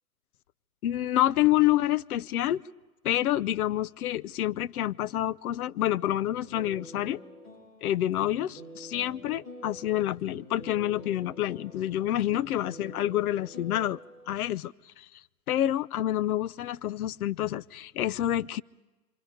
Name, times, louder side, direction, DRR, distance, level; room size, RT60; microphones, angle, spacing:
voice 1, 0.8-2.6 3.0-7.2 7.8-14.0 14.3-15.1 15.5-18.6, left 13 dB, 75° left, 0.6 m, -28 dB
sound 1, 6.3-14.3, equal, 35° left, 5.9 m, -47 dB
26.5 x 26.0 x 5.1 m
hypercardioid pair, 155°, 45 cm